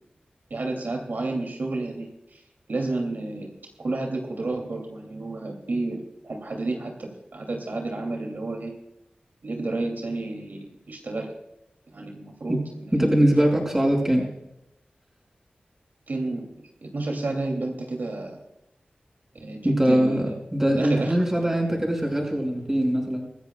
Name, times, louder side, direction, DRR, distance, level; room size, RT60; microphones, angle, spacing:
voice 1, 0.5-2.4 2.7-3.5 3.8-8.7 9.4-11.3 11.9-13.1 16.1-16.5 16.8-18.4 19.3-20.2 20.8-21.5, right 2 dB, 75° right, 1 dB, 2.7 m, -31 dB
voice 2, 12.9-14.3 19.6-20.3 20.5-23.3, right 1 dB, 15° right, 1 dB, 5.9 m, -22 dB
24.5 x 14.5 x 2.4 m, 0.86 s
wide cardioid pair, 85°, 3 cm